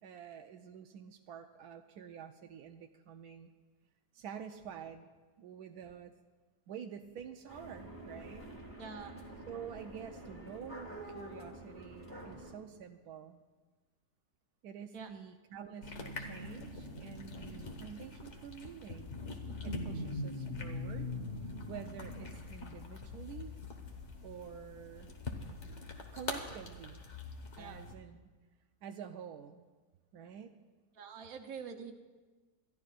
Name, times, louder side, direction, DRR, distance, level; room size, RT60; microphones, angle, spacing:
voice 1, 0.0-3.5 4.1-5.1 5.4-6.1 6.7-8.4 9.5-13.4 14.6-19.2 19.6-21.1 21.4-23.5 24.2-25.1 26.1-27.0 27.6-28.2 28.8-29.6 30.1-30.6, right 8 dB, 90° right, 5 dB, 1.2 m, -48 dB
sound 1, 7.5-12.5, right 1 dB, 10° left, 1.9 m, -48 dB
voice 2, 8.8-9.1 14.9-15.1 27.5-27.8 30.9-31.9, right 6 dB, 65° right, 5 dB, 1.4 m, -45 dB
sound 2, 15.8-27.9, left 2 dB, 50° left, 1.6 m, -43 dB
27.5 x 14.0 x 2.5 m, 1.3 s
omnidirectional pair, 1.6 m